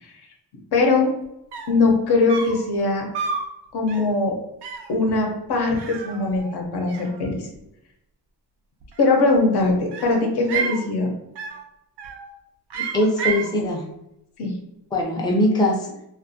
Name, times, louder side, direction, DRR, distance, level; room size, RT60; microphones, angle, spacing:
voice 1, 0.7-1.1 1.7-3.0 3.7-4.3 4.9-7.4 9.0-11.1 14.4-14.5, left 3 dB, 75° left, 1 dB, 0.8 m, -21 dB
sound 1, 1.2-1.3 1.5-1.9 2.3-2.7 3.1-3.5 3.9-4.2 4.6-5.0 5.8-6.6 6.9-7.6 8.8-9.4 9.9-10.8 11.4-11.7 12.0-12.3 12.7-13.5, right 5 dB, 85° right, 0.5 m, -31 dB
voice 2, 12.7-13.9 14.9-15.9, left 1 dB, 10° left, -1 dB, 0.4 m, -21 dB
2.4 x 2.3 x 2.6 m, 0.84 s
cardioid pair, 115°, 40 cm